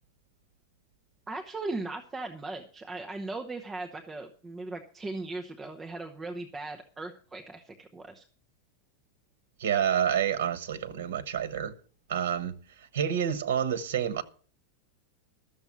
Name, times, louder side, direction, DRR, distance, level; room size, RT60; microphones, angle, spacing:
voice 1, 1.3-8.2, right 2 dB, 10° right, 0.9 m, -38 dB
voice 2, 9.6-11.7 12.1-14.2, right 9 dB, 85° right, 1.2 m, -29 dB
13.5 x 7.0 x 7.3 m
supercardioid pair, 165°, 0 cm